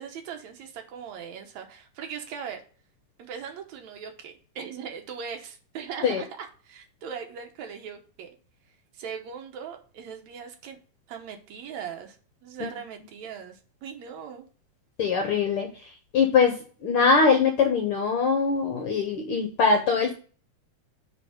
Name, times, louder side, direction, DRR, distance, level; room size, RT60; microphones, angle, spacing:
voice 1, 0.0-2.6 3.2-8.3 8.9-10.8 11.1-12.2 12.4-14.5, right 7 dB, 70° right, 4 dB, 2.3 m, -39 dB
voice 2, 15.0-20.1, left 5 dB, 65° left, 4 dB, 1.4 m, -22 dB
9.0 x 3.6 x 6.3 m, 0.40 s
omnidirectional pair, 3.5 m